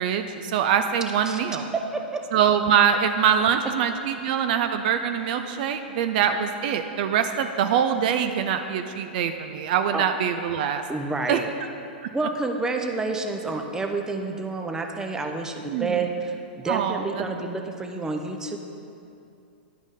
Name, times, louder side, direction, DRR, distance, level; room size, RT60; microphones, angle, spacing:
voice 1, 0.0-1.7 2.3-10.8 11.3-11.4 15.7-16.0 16.7-17.0, right 8 dB, 55° right, 8 dB, 0.4 m, -23 dB
voice 2, 10.9-11.5 12.1-18.6, right 3 dB, 10° right, 4 dB, 0.6 m, -29 dB
11.0 x 5.2 x 3.7 m, 2.6 s
hypercardioid pair, 115°, 5 cm